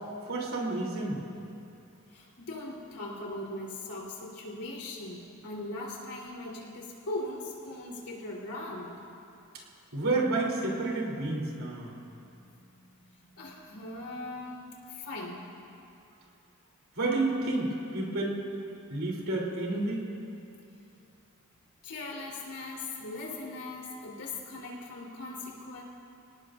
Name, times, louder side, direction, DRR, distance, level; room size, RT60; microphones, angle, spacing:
voice 1, 0.3-1.2 9.9-11.9 16.9-18.4 18.9-20.0, right 2 dB, 65° right, -2 dB, 3.4 m, -30 dB
voice 2, 2.1-8.9 12.2-12.4 12.8-12.9 13.3-14.6 14.9-15.4 21.8-25.8, left 2 dB, 80° left, -3 dB, 3.8 m, -39 dB
28.5 x 18.0 x 2.6 m, 2.7 s
head